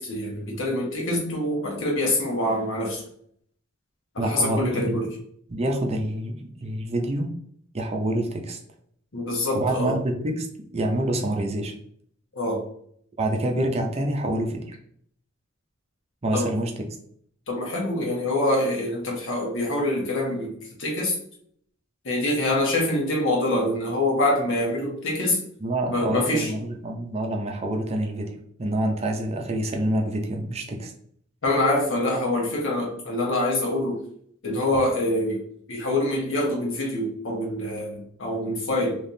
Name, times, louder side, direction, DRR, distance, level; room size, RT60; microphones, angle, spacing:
voice 1, 0.0-3.0 4.1-5.1 9.1-10.0 12.3-12.6 16.3-16.5 17.5-20.5 20.8-21.1 22.0-25.4 25.9-26.5 31.4-34.0 34.4-35.4 35.7-39.0, left 1 dB, 65° left, -1 dB, 1.3 m, -25 dB
voice 2, 4.2-5.1 5.5-7.3 7.7-8.6 9.5-10.5 10.7-11.7 13.2-14.7 16.2-16.7 25.6-30.9, right 1 dB, 30° right, 2 dB, 0.6 m, -27 dB
3.4 x 3.0 x 2.7 m, 0.64 s
head